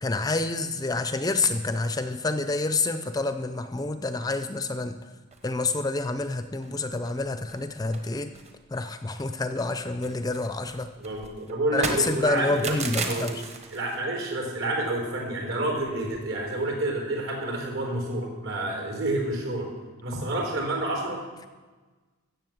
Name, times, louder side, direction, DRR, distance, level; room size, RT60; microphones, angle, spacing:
voice 1, 0.0-4.9 5.4-8.3 8.7-10.9 11.7-13.4, left 3 dB, 15° left, 9 dB, 0.5 m, -28 dB
sound 1, 5.3-5.8 6.2-6.3 6.6-6.8 7.0-7.6 7.9-9.3 9.6-14.0, right 4 dB, 30° right, 1.2 m, -36 dB
voice 2, 11.0-12.7 13.0-13.3 13.7-19.7 20.0-21.2, right 2 dB, 65° right, 1 dB, 4.4 m, -29 dB
15.0 x 7.4 x 7.7 m, 1.3 s
head